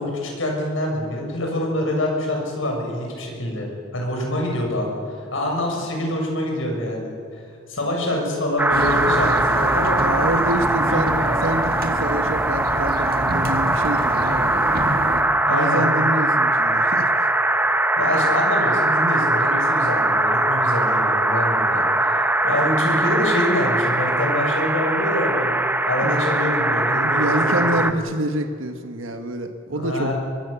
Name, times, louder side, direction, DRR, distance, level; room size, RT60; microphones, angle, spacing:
voice 1, 0.0-5.0 5.3-7.1 7.7-10.0 10.7-11.4 15.5-15.9 18.0-25.5 25.9-28.0 29.7-30.1, left 1 dB, 75° left, 0 dB, 7.3 m, -25 dB
sound 1, 8.6-27.9, right 1 dB, 10° right, 0.9 m, -21 dB
sound 2, 8.7-15.2, right 1 dB, 50° right, 2.3 m, -29 dB
voice 2, 10.0-11.2 11.4-14.5 15.5-17.3 26.0-26.2 27.0-30.1, right 1 dB, 80° right, 6 dB, 1.5 m, -27 dB
24.0 x 23.0 x 7.0 m, 2.3 s
head